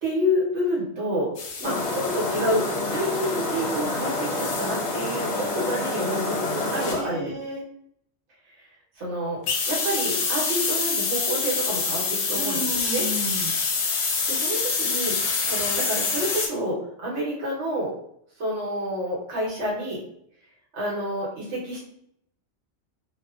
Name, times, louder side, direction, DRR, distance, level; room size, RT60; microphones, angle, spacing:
voice 1, 0.0-7.3 8.6-8.7 9.0-9.4 9.7-12.6 12.9-13.0 14.3-17.9 18.4-20.0 20.7-21.8, equal, 80° right, -5 dB, 1.2 m, -28 dB
sound 1, 1.4-7.0 9.4-16.5, left 4 dB, 85° left, 0.9 m, -28 dB
sound 2, 1.6-6.9, left 2 dB, 40° left, 0.6 m, -28 dB
voice 2, 6.9-7.6 12.3-13.6, right 1 dB, 55° right, -4 dB, 1.0 m, -33 dB
2.7 x 2.1 x 2.3 m, 0.71 s
omnidirectional pair, 1.1 m